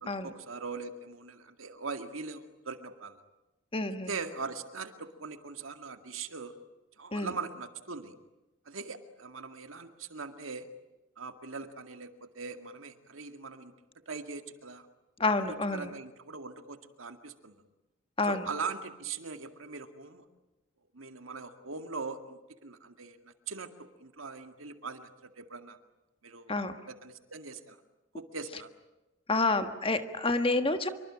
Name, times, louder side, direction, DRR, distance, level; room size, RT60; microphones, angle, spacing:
voice 1, 0.0-3.2 4.1-6.5 7.0-8.1 8.7-10.7 11.2-13.7 14.1-14.9 15.5-17.6 18.3-20.3 20.9-25.8 26.2-26.6 26.9-27.8 28.1-28.7, right 4 dB, 80° right, 8 dB, 2.1 m, -41 dB
voice 2, 3.7-4.2 7.1-7.3 15.2-15.9 18.2-18.4 26.5-26.8 29.3-30.9, left 3 dB, 25° left, 9 dB, 1.5 m, -29 dB
26.0 x 24.0 x 8.7 m, 1.0 s
head